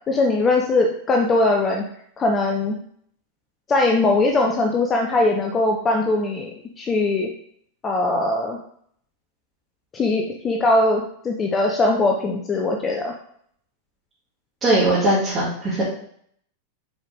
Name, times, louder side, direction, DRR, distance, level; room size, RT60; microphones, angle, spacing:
voice 1, 0.1-1.8 2.2-2.8 3.7-6.5 6.8-7.3 7.8-8.6 9.9-13.1, left 2 dB, 20° left, 1 dB, 0.7 m, -20 dB
voice 2, 14.6-15.8, right 1 dB, 20° right, -11 dB, 2.7 m, -20 dB
6.4 x 4.8 x 3.5 m, 0.65 s
figure-of-eight pair, 90°, 0 cm